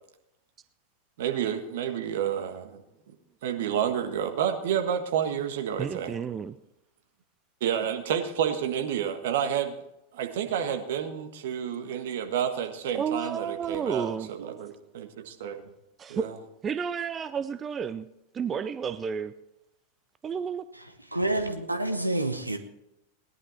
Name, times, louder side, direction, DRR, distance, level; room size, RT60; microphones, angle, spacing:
voice 1, 1.2-2.8 3.4-6.2 7.6-9.7 10.1-15.6 16.1-16.3, right 9 dB, 55° right, 1.6 m, -30 dB
voice 2, 5.8-6.5 12.9-14.3 16.0-16.3 16.6-18.1 18.3-19.3 20.2-20.6, right 7 dB, 20° right, 0.5 m, -31 dB
voice 3, 21.1-22.6, right 1 dB, 85° right, 1.0 m, -28 dB
18.0 x 11.0 x 4.4 m
figure-of-eight pair, 90°, 0 cm